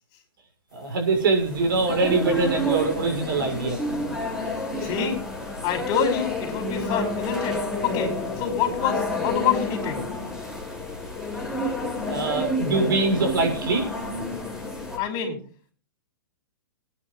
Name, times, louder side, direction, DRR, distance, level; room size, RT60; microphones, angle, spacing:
voice 1, 0.7-3.8 4.7-4.9 12.0-13.9, right 3 dB, 70° right, 3 dB, 6.3 m, -23 dB
sound 1, 1.0-15.0, left 1 dB, 5° right, 4.0 m, -30 dB
voice 2, 4.8-5.2 5.6-10.0 15.0-15.4, left 7 dB, 35° left, 2 dB, 5.3 m, -27 dB
20.5 x 9.9 x 4.0 m, 0.41 s
hypercardioid pair, 130°, 12 cm